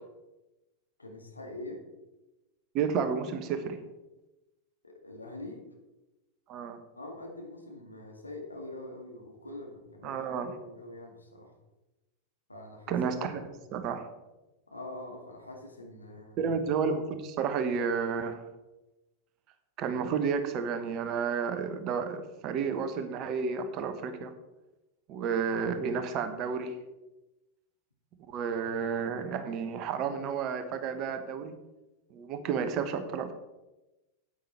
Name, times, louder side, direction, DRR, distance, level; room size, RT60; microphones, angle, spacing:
voice 1, 1.0-1.8 4.8-5.6 6.9-11.5 12.5-13.0 13.4-13.6 14.7-16.4, left 2 dB, 80° left, 1 dB, 2.0 m, -44 dB
voice 2, 2.7-3.8 6.5-6.8 10.0-10.6 12.9-13.4 13.7-14.1 16.4-18.4 19.8-24.3 25.1-26.7 28.3-31.5 32.1-33.3, right 6 dB, 35° right, 9 dB, 1.2 m, -31 dB
9.0 x 8.9 x 4.5 m, 1.0 s
figure-of-eight pair, 90°, 0 cm